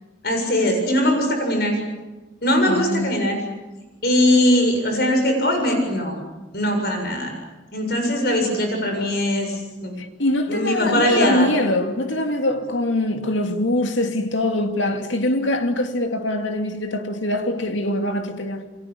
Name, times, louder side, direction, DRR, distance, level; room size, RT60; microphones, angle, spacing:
voice 1, 0.2-1.8 2.4-3.4 4.0-6.2 6.5-7.3 7.7-9.9 10.5-11.5, left 1 dB, 55° left, 7.3 m, -20 dB
voice 2, 2.7-3.3 10.0-18.7, left 1 dB, 85° left, 2.7 m, -23 dB
29.5 x 23.5 x 8.6 m
head